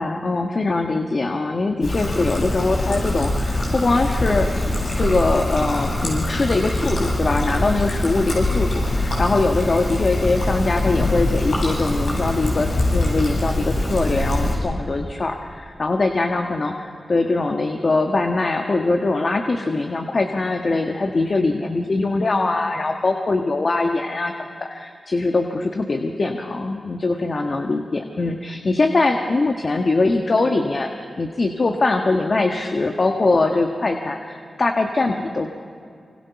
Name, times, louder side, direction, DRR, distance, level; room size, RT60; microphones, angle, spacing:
voice 1, 0.0-4.7 5.0-27.8 28.2-35.5, left 3 dB, 55° left, 4 dB, 1.5 m, -22 dB
Trickle dribble, 1.8-14.5, left 1 dB, 70° left, 7.8 m, -23 dB
25.5 x 25.0 x 5.9 m, 2.4 s
cardioid pair, 40°, 0 cm